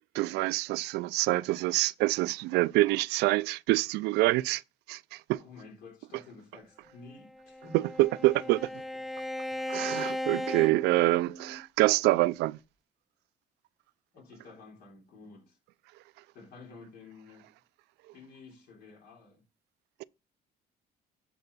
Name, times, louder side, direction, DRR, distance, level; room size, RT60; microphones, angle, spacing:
voice 1, 0.1-4.6 4.9-5.4 7.7-8.6 9.7-12.6, right 19 dB, 85° right, 0.4 m, -26 dB
voice 2, 5.4-7.9 8.1-8.8 14.1-15.6 16.3-17.5 18.1-19.4, left 4 dB, 70° left, 3.8 m, -51 dB
Bowed string instrument, 7.2-11.6, left 1 dB, ahead, 0.4 m, -37 dB
11.0 x 4.6 x 4.0 m
cardioid pair, 110°, 17 cm